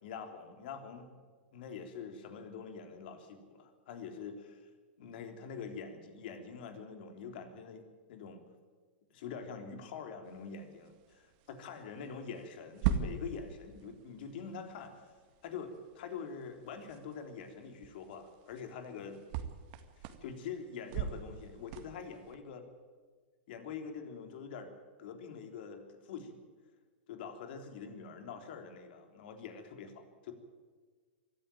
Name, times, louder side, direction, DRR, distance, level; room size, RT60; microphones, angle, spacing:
voice 1, 0.0-1.1 1.5-4.6 5.0-7.8 8.1-8.4 9.1-10.9 11.6-14.9 15.4-19.2 20.0-22.6 23.5-24.7 25.0-26.4 27.1-30.3, left 6 dB, 60° left, 5 dB, 3.5 m, -45 dB
sound 1, 10.2-22.3, right 8 dB, 50° right, 1.9 m, -42 dB
24.0 x 14.0 x 9.1 m, 1.5 s
hypercardioid pair, 110°, 6 cm